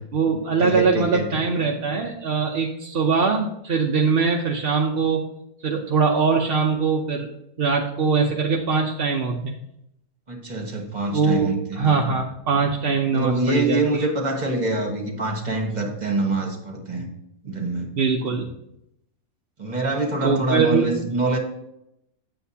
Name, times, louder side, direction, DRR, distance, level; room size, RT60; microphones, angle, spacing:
voice 1, 0.1-5.2 5.6-7.3 7.6-9.6 11.1-11.5 11.8-13.8 17.9-18.5 20.2-20.9, right 5 dB, 50° right, 0 dB, 0.7 m, -22 dB
voice 2, 0.6-1.3 10.3-12.2 13.1-17.1 17.4-17.9 19.6-21.4, right 2 dB, 30° right, 2 dB, 1.5 m, -25 dB
8.9 x 8.0 x 2.8 m, 0.78 s
omnidirectional pair, 1.6 m